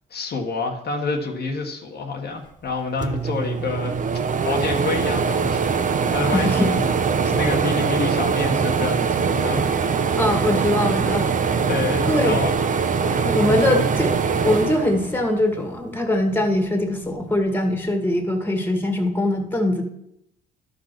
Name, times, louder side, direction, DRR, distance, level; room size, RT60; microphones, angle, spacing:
voice 1, 0.1-3.9 4.4-5.8 6.1-6.8 7.2-9.7 11.7-12.7 13.1-13.8, left 4 dB, 55° left, 1 dB, 1.4 m, -28 dB
sound 1, 2.7-2.8 3.0-15.6 16.0-17.2, right 5 dB, 40° right, 0.9 m, -22 dB
voice 2, 6.3-6.7 10.2-11.2 12.0-12.4 13.2-14.1 14.4-19.8, left 1 dB, 10° left, 4 dB, 2.1 m, -22 dB
12.0 x 5.2 x 6.0 m, 0.78 s
cardioid pair, 90°, 20 cm